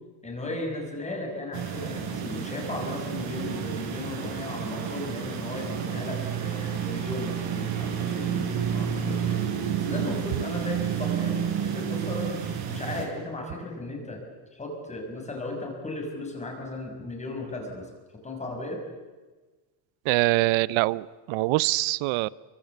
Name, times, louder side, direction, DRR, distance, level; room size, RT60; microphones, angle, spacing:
voice 1, 0.2-8.4 8.7-9.4 9.8-14.2 14.5-17.9 18.2-18.8, left 2 dB, 15° left, 2 dB, 6.0 m, -36 dB
sound 1, 1.5-13.1, right 8 dB, 50° right, 5.7 m, -30 dB
voice 2, 20.1-22.3, right 21 dB, 70° right, 21 dB, 0.8 m, -24 dB
28.0 x 24.5 x 8.3 m, 1.3 s
cardioid pair, 175°, 49 cm